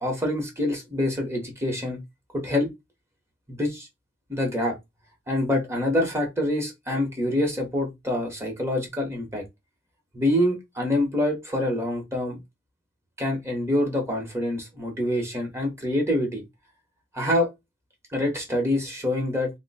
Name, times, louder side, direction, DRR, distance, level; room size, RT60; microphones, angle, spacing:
voice 1, 0.0-2.0 2.3-2.7 3.5-3.9 4.3-4.7 5.3-9.4 10.1-12.4 13.2-16.4 17.1-17.5 18.1-19.5, left 1 dB, 15° right, 1.1 m, -26 dB
2.8 x 2.2 x 4.1 m
head